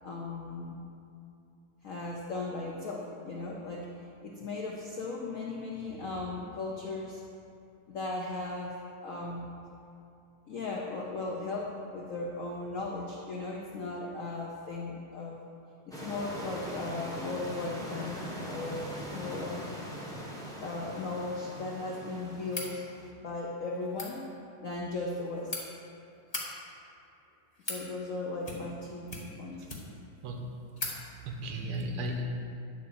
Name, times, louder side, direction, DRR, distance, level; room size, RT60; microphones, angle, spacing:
voice 1, 0.0-0.8 1.8-3.9 4.2-7.2 7.9-9.5 10.5-15.4 15.9-19.6 20.6-22.8 23.2-24.3 24.6-25.6 27.7-29.6, left 3 dB, 75° left, -2 dB, 0.7 m, -37 dB
sound 1, 15.9-23.1, equal, 5° left, 0.5 m, -41 dB
sound 2, 22.5-22.7 23.8-24.1 25.1-25.6 26.2-26.5 27.2-27.8 28.4-28.8 29.1-30.0 30.4-30.5 30.8-31.0, left 2 dB, 25° left, 1.0 m, -38 dB
voice 2, 31.2-32.2, right 1 dB, 85° right, 2 dB, 1.8 m, -35 dB
10.0 x 4.0 x 6.8 m, 2.6 s
omnidirectional pair, 2.4 m